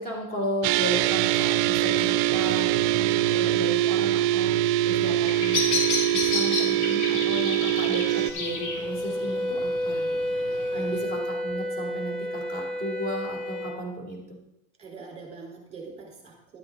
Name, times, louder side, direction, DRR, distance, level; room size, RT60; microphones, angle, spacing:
voice 1, 0.0-10.0 10.4-14.4, equal, 25° left, 0 dB, 3.3 m, -35 dB
sound 1, 0.6-8.3, right 13 dB, 55° right, 0.4 m, -23 dB
Bird vocalization bird call bird song, 5.0-11.0, left 3 dB, 80° left, 2.5 m, -32 dB
Wind instrument woodwind instrument, 8.0-13.8, equal, ahead, 1.3 m, -31 dB
voice 2, 10.3-10.8 14.8-16.6, right 4 dB, 15° right, -1 dB, 3.9 m, -44 dB
11.5 x 8.8 x 3.9 m, 0.84 s
cardioid pair, 130°, 38 cm